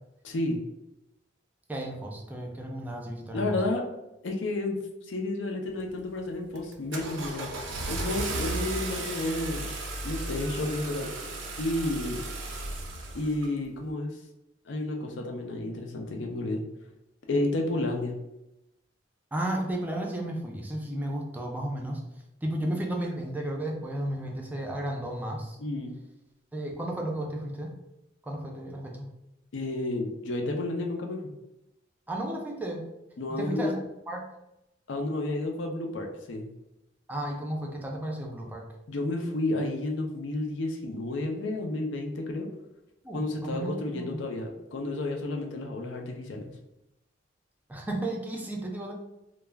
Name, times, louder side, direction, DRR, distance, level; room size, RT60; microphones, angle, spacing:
voice 1, 0.2-0.6 3.3-3.8 4.2-4.8 5.1-9.7 10.0-11.1 11.6-12.2 13.1-14.2 14.6-16.6 17.3-18.1 25.6-25.9 29.5-31.2 33.2-33.7 34.9-36.5 38.9-42.5 43.1-46.5, left 2 dB, 70° left, 2 dB, 0.5 m, -31 dB
voice 2, 1.7-3.4 19.3-22.0 22.4-25.6 26.5-27.7 28.2-29.1 32.1-32.9 33.3-33.8 34.1-34.2 37.1-38.7 43.0-44.2 47.7-48.9, right 1 dB, 10° right, 0 dB, 0.4 m, -33 dB
Car / Engine starting, 5.8-6.1 6.6-13.5, right 2 dB, 90° right, 0.5 m, -35 dB
2.3 x 2.0 x 3.3 m, 0.89 s
head